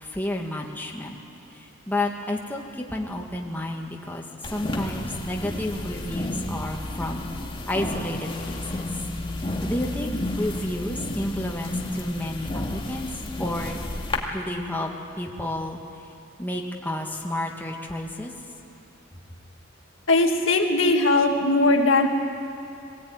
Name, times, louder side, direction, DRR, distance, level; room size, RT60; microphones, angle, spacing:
voice 1, 0.0-1.2 1.5-7.3 7.7-8.8 9.6-13.8 14.3-14.9 15.2-15.8 16.4-18.3, left 1 dB, 10° left, 0 dB, 1.8 m, -31 dB
sound 1, 4.4-14.2, left 1 dB, 25° left, 2.2 m, -31 dB
voice 2, 20.1-22.1, left 2 dB, 75° left, 3 dB, 1.9 m, -19 dB
22.0 x 17.0 x 9.5 m, 2.9 s
head